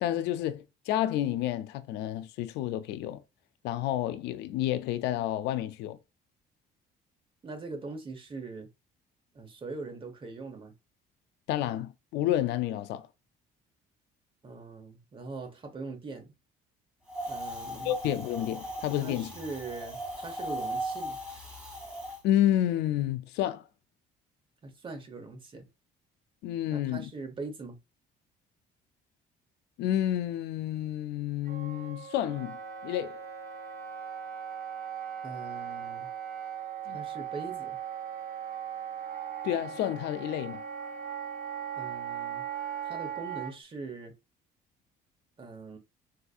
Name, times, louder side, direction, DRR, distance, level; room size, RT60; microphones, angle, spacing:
voice 1, 0.0-3.2 3.6-6.0 11.5-13.1 17.8-19.3 22.2-23.6 26.4-27.1 29.8-32.6 32.8-33.2 36.9-37.0 39.4-40.6, left 12 dB, 85° left, 0.4 m, -30 dB
voice 2, 7.4-8.7 9.3-10.7 14.4-16.3 17.3-17.9 18.9-21.2 24.6-25.7 26.7-27.8 35.2-36.1 36.9-37.8 41.8-42.4 42.8-44.1 45.4-45.8, right 3 dB, 30° right, 1.0 m, -41 dB
Wind, 17.1-22.2, right 1 dB, 5° right, 1.7 m, -38 dB
Wind instrument woodwind instrument, 31.5-43.5, right 8 dB, 65° right, 2.1 m, -38 dB
4.0 x 2.6 x 2.3 m
cardioid pair, 110°, 17 cm